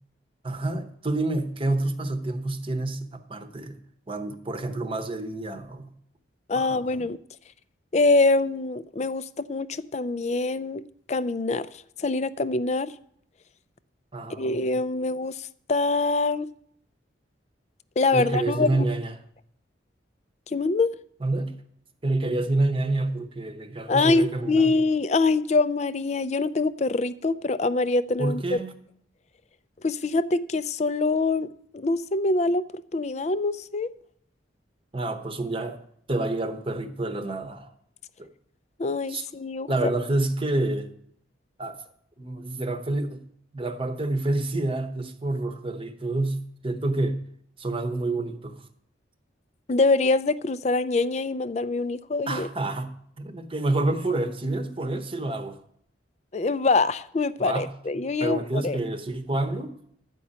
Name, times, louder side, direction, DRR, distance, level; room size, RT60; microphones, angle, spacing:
voice 1, 0.4-3.8 4.1-5.9 6.5-7.1 14.1-14.6 18.1-19.1 21.2-21.5 22.0-24.7 28.2-28.7 34.9-35.8 36.1-37.7 38.2-38.3 39.1-39.3 39.7-40.9 41.6-41.8 42.2-43.2 43.5-47.2 47.6-48.6 52.3-55.6 57.4-57.7 58.0-59.7, right 2 dB, 30° right, 0.9 m, -28 dB
voice 2, 6.5-7.2 7.9-10.8 11.1-11.7 12.0-12.9 14.4-15.3 15.7-16.5 18.0-18.9 20.5-20.9 23.9-28.6 29.8-31.5 31.7-33.9 38.8-39.7 49.7-52.5 56.3-58.8, left 3 dB, 35° left, 0.4 m, -24 dB
12.0 x 5.3 x 8.6 m
head